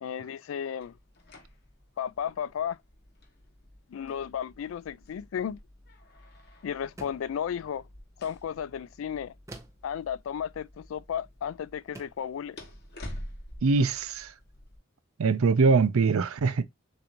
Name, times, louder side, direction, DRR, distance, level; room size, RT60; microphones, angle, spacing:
voice 1, 0.0-0.9 2.0-2.8 3.9-5.6 6.6-7.8 8.2-9.3 9.8-12.6, left 8 dB, 70° left, 0.3 m, -34 dB
sound 1, 0.8-14.8, left 1 dB, 50° left, 1.1 m, -49 dB
sound 2, 7.0-7.4 9.5-9.9 11.2-11.4 11.9-12.3, right 2 dB, 15° right, 0.6 m, -46 dB
voice 2, 13.6-14.3 15.2-16.6, right 4 dB, 85° right, 0.5 m, -23 dB
6.7 x 2.6 x 2.8 m
head